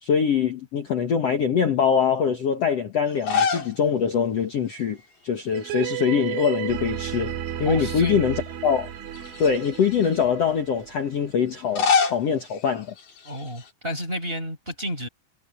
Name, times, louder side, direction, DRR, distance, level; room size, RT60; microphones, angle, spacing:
voice 1, 0.0-5.0 5.2-8.3 8.6-8.9 9.4-12.9, left 7 dB, 80° left, 1.4 m, -23 dB
sound 1, 3.1-3.8 4.1-4.2 5.6-6.0 6.3-7.5 8.1-8.2 9.1-10.2 11.5-13.7, left 5 dB, 45° left, 5.2 m, -27 dB
sound 2, 5.5-11.2, right 11 dB, 85° right, 4.6 m, -33 dB
voice 2, 7.6-8.4 13.2-15.1, equal, 10° right, 5.8 m, -31 dB
omnidirectional pair, 5.4 m